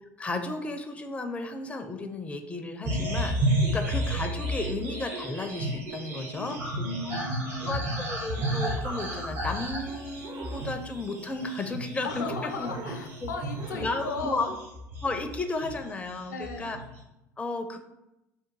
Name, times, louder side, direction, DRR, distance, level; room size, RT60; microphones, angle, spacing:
voice 1, 0.2-7.2 7.7-12.7 13.2-13.3 13.7-14.5 15.0-16.8 17.4-17.8, left 2 dB, 15° left, 6 dB, 0.4 m, -34 dB
sound 1, 2.8-15.9 16.2-16.9, right 1 dB, 60° right, 1.4 m, -32 dB
voice 2, 6.4-7.9 12.0-14.6 16.3-16.7, left 4 dB, 75° left, 5 dB, 0.4 m, -37 dB
sound 2, 8.2-9.8 10.1-11.3 12.1-13.2 13.5-14.2, right 4 dB, 40° right, 0.6 m, -43 dB
3.7 x 2.2 x 4.5 m, 0.91 s
figure-of-eight pair, 70°, 9 cm